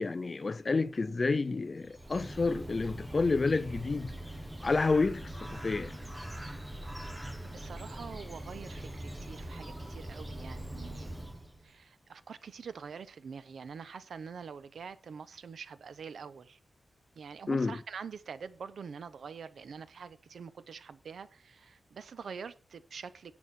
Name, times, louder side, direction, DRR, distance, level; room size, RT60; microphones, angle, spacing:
voice 1, 0.0-4.1 4.6-6.0 17.5-17.8, left 3 dB, 35° left, 0.5 m, -29 dB
Bird, 1.7-11.7, right 1 dB, 10° right, 1.4 m, -42 dB
voice 2, 7.4-11.2 11.6-16.6 17.1-23.3, right 6 dB, 85° right, 0.9 m, -45 dB
11.0 x 8.4 x 4.4 m
wide cardioid pair, 160°, 0 cm